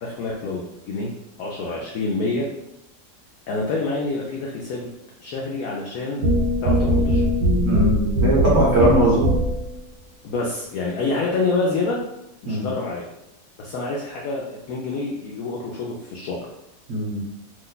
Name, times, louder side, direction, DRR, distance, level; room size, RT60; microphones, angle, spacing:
voice 1, 0.0-1.1 1.4-2.5 3.5-4.9 5.2-6.3 6.6-7.2 10.2-12.0 12.4-13.0 13.6-16.4, left 3 dB, 70° left, -3 dB, 0.8 m, -27 dB
sound 1, 6.2-9.8, equal, 65° right, 1.3 m, -20 dB
voice 2, 7.6-9.3 12.4-12.7 16.9-17.2, right 1 dB, 50° right, -5 dB, 0.9 m, -20 dB
2.9 x 2.2 x 3.8 m, 0.85 s
omnidirectional pair, 1.8 m